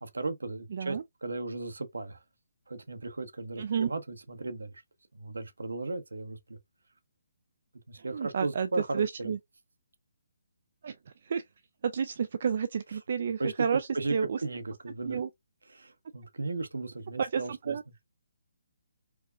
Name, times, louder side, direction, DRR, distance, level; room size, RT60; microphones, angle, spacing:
voice 1, 0.0-2.2 2.7-4.7 5.1-6.6 7.9-9.3 13.4-13.5 13.9-14.2 14.4-15.2 15.7-17.8, right 3 dB, 80° right, 0.8 m, -36 dB
voice 2, 0.7-1.0 3.6-3.9 8.0-8.7 8.9-9.4 10.8-11.4 11.8-14.4 15.1-15.3 17.2-17.8, right 6 dB, 55° right, 0.3 m, -31 dB
4.6 x 2.2 x 2.4 m
figure-of-eight pair, 145°, 0 cm